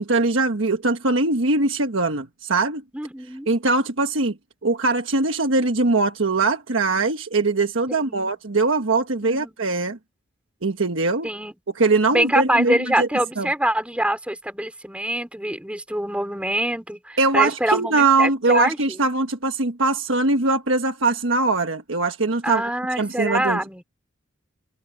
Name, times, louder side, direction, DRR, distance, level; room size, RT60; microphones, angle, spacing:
voice 1, 0.0-2.8 3.5-4.4 4.6-10.0 10.6-11.3 11.7-13.1 13.4-13.5 17.2-22.6 23.0-23.6, right 3 dB, 75° right, 1.3 m, -21 dB
voice 2, 2.9-3.5 7.9-8.3 9.2-9.5 11.2-11.5 12.1-18.8 22.4-23.8, right 1 dB, 5° right, 4.3 m, -25 dB
open air
head